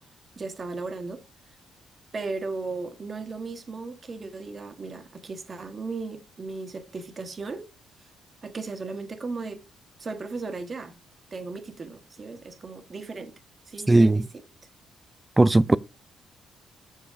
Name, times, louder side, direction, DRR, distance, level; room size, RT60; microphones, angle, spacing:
voice 1, 0.4-1.2 2.1-7.7 8.0-8.1 8.4-9.6 10.0-11.0 11.3-13.3 13.7-14.4, right 3 dB, 35° right, 1.6 m, -36 dB
voice 2, 13.9-14.2 15.4-15.8, right 2 dB, 15° right, 0.4 m, -17 dB
7.6 x 6.6 x 5.1 m
cardioid pair, 90°, 0 cm